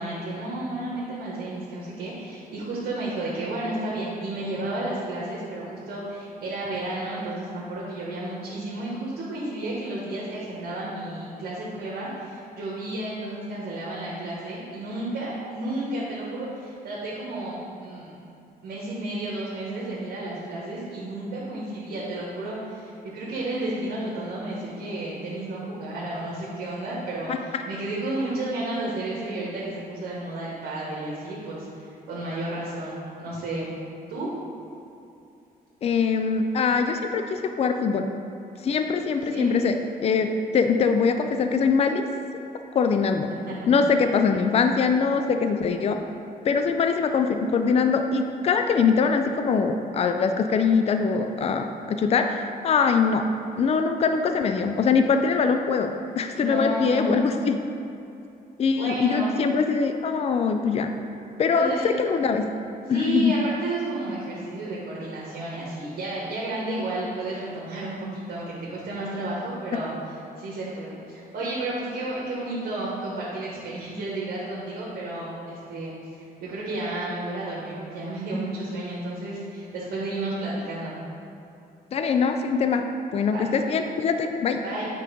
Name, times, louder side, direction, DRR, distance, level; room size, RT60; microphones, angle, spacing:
voice 1, 0.0-18.1 18.6-33.8 34.1-34.3 39.3-39.6 43.3-43.7 56.4-57.2 58.8-59.3 61.5-61.9 62.9-69.9 70.4-75.9 76.4-81.0 83.3-83.4 84.6-84.9, right 2 dB, 80° right, -6 dB, 1.4 m, -32 dB
voice 2, 35.8-38.1 38.6-39.8 40.0-42.1 42.7-43.3 43.7-46.0 46.4-53.3 53.6-57.6 58.6-60.9 61.4-61.7 62.0-62.4 62.9-63.3 81.9-84.6, left 5 dB, 40° left, 6 dB, 0.4 m, -23 dB
8.4 x 3.7 x 5.2 m, 2.7 s
cardioid pair, 115°, 16 cm